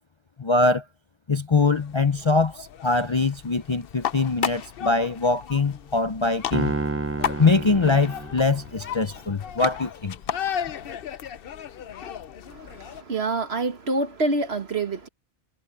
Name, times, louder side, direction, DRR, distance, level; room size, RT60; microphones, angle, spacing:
voice 1, 0.4-0.8 1.3-6.8 7.4-10.2, left 3 dB, 35° left, 0.5 m, -23 dB
sound 1, 1.5-13.0, left 9 dB, 60° left, 0.9 m, -34 dB
Piano, 6.5-8.9, right 3 dB, 20° right, 0.4 m, -30 dB
voice 2, 12.5-15.1, right 2 dB, 65° right, 1.9 m, -27 dB
omnidirectional pair, 1.1 m